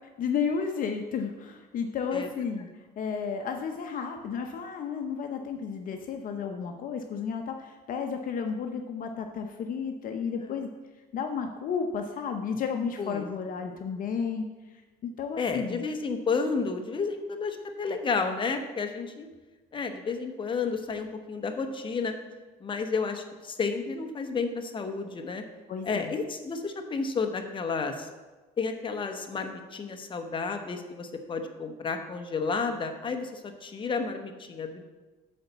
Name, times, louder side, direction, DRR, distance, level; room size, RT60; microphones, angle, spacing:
voice 1, 0.2-2.7 3.0-10.7 11.1-14.5 15.0-15.8 25.7-26.1, left 6 dB, 55° left, 5 dB, 0.7 m, -32 dB
voice 2, 15.4-19.3 19.7-22.1 22.6-25.4 25.8-28.1 28.6-34.8, left 4 dB, 30° left, 5 dB, 0.9 m, -31 dB
8.7 x 4.1 x 6.7 m, 1.2 s
cardioid pair, 110°, 17 cm